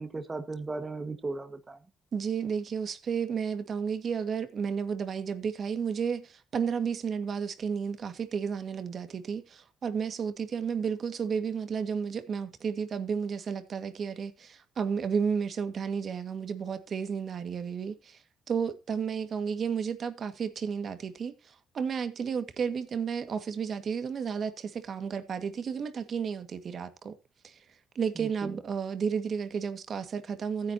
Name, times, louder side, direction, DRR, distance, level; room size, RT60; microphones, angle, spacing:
voice 1, 0.0-1.8 28.2-28.6, right 3 dB, 25° right, 1.7 m, -36 dB
voice 2, 2.1-18.2 18.5-27.1 27.4-27.6 28.0-30.7, right 6 dB, 55° right, 2.0 m, -32 dB
16.0 x 9.8 x 2.9 m
cardioid pair, 90°, 0 cm